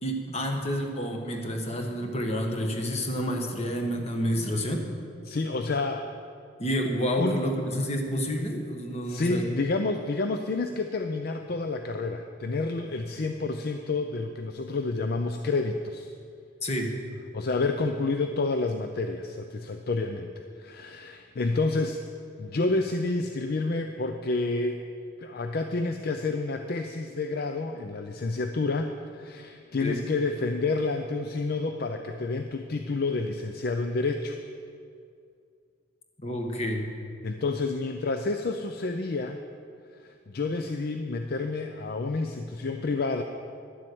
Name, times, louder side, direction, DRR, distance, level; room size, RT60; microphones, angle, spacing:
voice 1, 0.0-4.9 6.6-9.5 16.6-16.9 29.8-30.1 36.2-36.9, equal, 35° left, 3 dB, 1.4 m, -29 dB
voice 2, 5.3-6.1 7.2-7.4 9.1-16.1 17.3-22.0 22.4-24.8 25.2-34.4 37.2-39.4 40.0-43.2, left 3 dB, 55° left, 6 dB, 0.5 m, -29 dB
11.0 x 7.6 x 7.9 m, 2.3 s
head